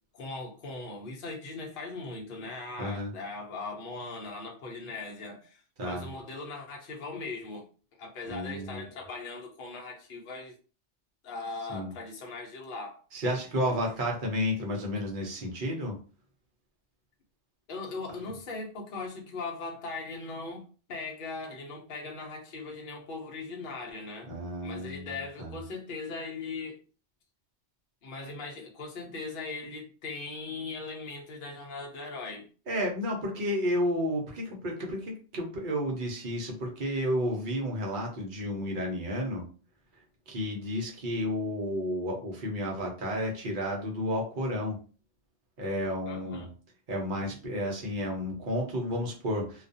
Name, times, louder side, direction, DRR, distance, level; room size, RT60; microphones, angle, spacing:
voice 1, 0.1-7.7 8.0-10.6 11.2-13.0 17.7-24.3 24.6-26.8 28.0-32.5 46.1-46.5, left 3 dB, 55° left, 0.8 m, -39 dB
voice 2, 2.8-3.1 5.8-6.1 8.3-8.8 11.7-11.9 13.1-15.9 24.3-25.1 25.4-25.6 32.7-39.4 40.3-44.8 45.6-46.5 46.9-49.7, equal, 50° right, 0.8 m, -31 dB
2.4 x 2.2 x 2.6 m
omnidirectional pair, 1.2 m